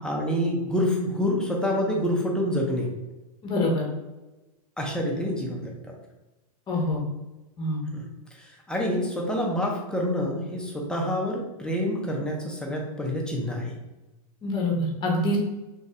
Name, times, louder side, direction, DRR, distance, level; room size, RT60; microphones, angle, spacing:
voice 1, 0.0-2.9 4.8-5.7 7.9-8.1 8.7-13.8, equal, 5° left, -2 dB, 0.7 m, -27 dB
voice 2, 3.4-3.9 6.7-7.0 7.6-7.8 14.4-15.4, left 1 dB, 25° left, -1 dB, 1.1 m, -25 dB
3.3 x 2.5 x 3.6 m, 1.1 s
hypercardioid pair, 125°, 19 cm